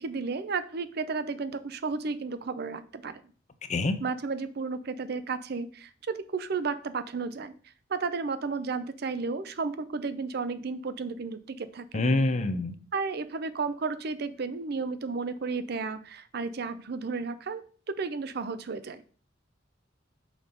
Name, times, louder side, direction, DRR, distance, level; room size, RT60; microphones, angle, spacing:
voice 1, 0.0-3.2 4.0-7.5 7.9-12.1 12.9-19.0, right 4 dB, 55° right, 13 dB, 0.5 m, -33 dB
voice 2, 11.9-12.7, left 2 dB, 35° left, 10 dB, 0.6 m, -25 dB
6.2 x 3.8 x 5.1 m, 0.42 s
head